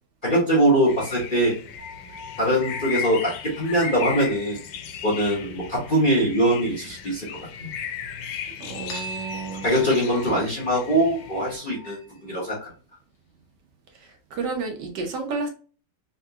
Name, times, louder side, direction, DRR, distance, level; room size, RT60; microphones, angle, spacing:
voice 1, 0.2-1.5 2.4-4.6 5.0-7.3 7.6-7.7 9.6-12.7, right 1 dB, 35° left, -4 dB, 0.9 m, -22 dB
sound 1, 0.9-11.6, left 7 dB, 80° left, 1.3 m, -37 dB
sound 2, 1.8-4.6 8.9-12.5, equal, 55° left, 1.3 m, -42 dB
voice 2, 8.6-9.7 14.3-15.5, right 4 dB, 70° right, 3 dB, 1.3 m, -31 dB
3.7 x 2.8 x 2.3 m, 0.37 s
omnidirectional pair, 2.0 m